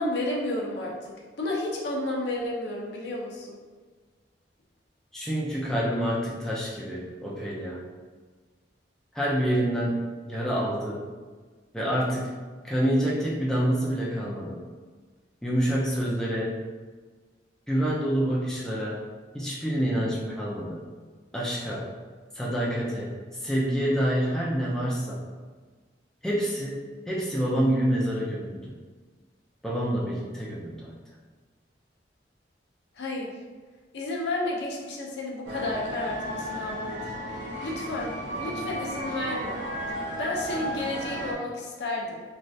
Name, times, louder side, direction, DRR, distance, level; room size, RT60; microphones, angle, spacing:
voice 1, 0.0-3.6 32.9-33.3 33.9-36.9 37.6-39.6 39.9-42.2, left 2 dB, 65° left, -2 dB, 0.6 m, -32 dB
voice 2, 5.1-7.8 9.1-11.0 11.7-12.4 12.6-14.6 15.4-16.6 17.7-19.0 19.3-20.8 21.3-21.9 22.3-25.2 26.2-28.7 29.6-30.9, equal, 5° left, -6 dB, 0.4 m, -27 dB
sound 1, 35.5-41.3, right 1 dB, 85° right, 0.8 m, -34 dB
3.2 x 2.3 x 2.6 m, 1.4 s
head